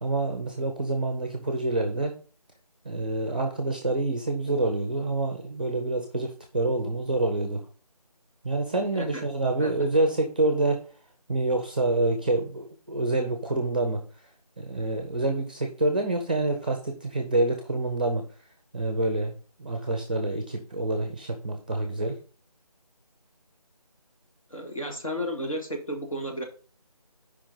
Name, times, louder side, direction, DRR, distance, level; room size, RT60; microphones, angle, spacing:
voice 1, 0.0-2.1 2.8-7.6 8.4-10.8 11.3-14.0 14.6-18.2 18.7-19.3 19.6-22.2, right 2 dB, 15° right, 4 dB, 0.7 m, -27 dB
voice 2, 24.5-26.4, equal, 55° left, 4 dB, 2.2 m, -33 dB
8.7 x 5.1 x 3.9 m, 0.39 s
figure-of-eight pair, 165°, 20 cm